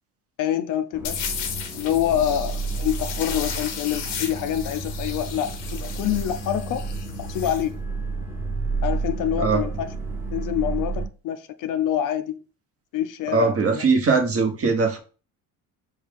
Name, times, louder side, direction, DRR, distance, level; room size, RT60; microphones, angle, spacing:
voice 1, 0.4-1.3 1.7-6.9 7.2-7.7 8.8-9.9 10.3-12.4 12.9-13.8, left 10 dB, 60° left, 0.5 m, -26 dB
sound 1, 0.9-11.1, right 3 dB, 5° right, 0.9 m, -31 dB
sound 2, 1.0-7.6, left 7 dB, 90° left, 0.9 m, -35 dB
voice 2, 13.3-15.0, right 4 dB, 40° right, 1.0 m, -20 dB
5.5 x 2.3 x 3.3 m
supercardioid pair, 80°, 37 cm